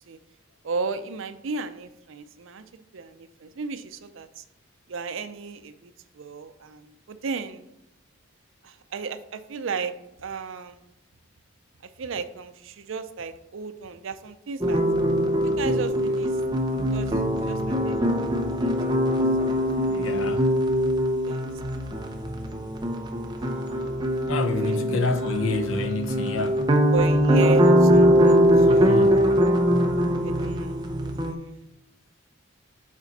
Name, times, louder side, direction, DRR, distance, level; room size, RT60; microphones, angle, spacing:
voice 1, 0.6-4.4 4.9-7.7 8.6-10.8 12.0-14.8 15.4-16.3 16.7-19.1 19.4-19.5 19.8-20.3 21.3-22.0 23.4-23.9 24.6-24.8 26.9-29.2 30.2-31.5, right 4 dB, 70° right, 0.5 m, -35 dB
sound 1, 14.6-31.3, equal, 20° right, 0.6 m, -22 dB
voice 2, 19.9-20.5 24.3-26.7 28.6-29.2, left 3 dB, 75° left, 0.7 m, -28 dB
7.4 x 4.3 x 4.0 m
head